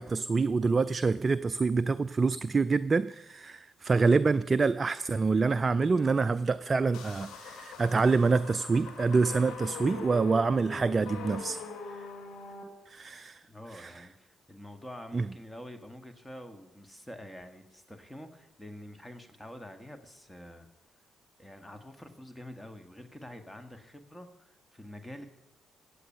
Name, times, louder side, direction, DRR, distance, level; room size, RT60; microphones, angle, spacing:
voice 1, 0.0-11.6 12.9-13.4 13.7-13.9 15.1-15.2, right 4 dB, 40° right, 15 dB, 0.4 m, -26 dB
sound 1, 6.9-12.6, left 5 dB, 70° left, 1.7 m, -42 dB
voice 2, 13.5-20.7 21.4-25.3, left 1 dB, 10° left, 8 dB, 1.6 m, -47 dB
15.5 x 8.5 x 5.6 m, 1.0 s
hypercardioid pair, 40°, 0 cm